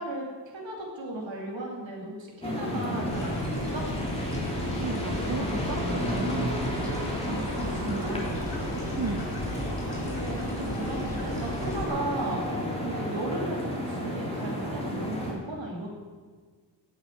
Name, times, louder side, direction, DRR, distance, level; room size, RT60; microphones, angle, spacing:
voice 1, 0.0-3.8 7.2-8.2 9.7-12.4 12.8-15.9, right 2 dB, 85° right, -2 dB, 2.6 m, -36 dB
sound 1, 2.4-15.3, equal, 15° left, 3.1 m, -31 dB
sound 2, 3.1-11.9, left 2 dB, 80° left, 4.5 m, -38 dB
voice 2, 4.8-6.6 7.9-8.4 9.0-9.2, right 5 dB, 40° right, 6 dB, 0.8 m, -34 dB
17.0 x 6.7 x 8.2 m, 1.5 s
wide cardioid pair, 125°, 44 cm